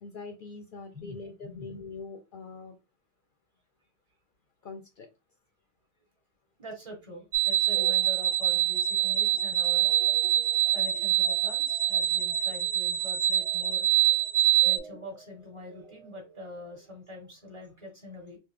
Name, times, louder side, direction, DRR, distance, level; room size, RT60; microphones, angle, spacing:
voice 1, 0.0-2.8 4.6-5.1, left 4 dB, 60° left, 6 dB, 0.6 m, -43 dB
voice 2, 0.9-1.7 6.6-9.9 10.7-13.9 14.6-18.4, left 2 dB, 30° right, -1 dB, 1.3 m, -44 dB
sound 1, 7.3-14.8, right 12 dB, 50° right, 0.8 m, -25 dB
sound 2, 7.7-16.9, right 3 dB, 75° right, 1.2 m, -48 dB
3.3 x 2.5 x 3.6 m, 0.26 s
omnidirectional pair, 1.1 m